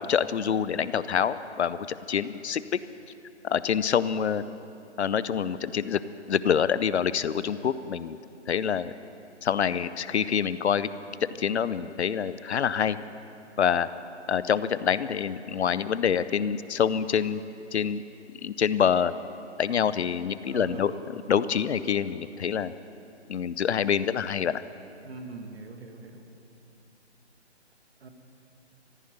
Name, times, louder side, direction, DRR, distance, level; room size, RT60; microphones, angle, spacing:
voice 1, 0.0-2.8 3.4-4.4 5.0-6.0 6.3-8.2 8.5-8.9 9.4-10.9 11.2-13.0 13.6-13.9 14.3-17.4 17.7-18.0 18.4-19.1 19.6-20.9 21.3-22.7 23.3-24.6, left 8 dB, 70° left, 15 dB, 0.7 m, -26 dB
voice 2, 20.5-21.0 25.0-26.2 28.0-28.1, right 4 dB, 60° right, 4 dB, 2.0 m, -41 dB
15.0 x 9.5 x 9.3 m, 2.7 s
hypercardioid pair, 150°, 34 cm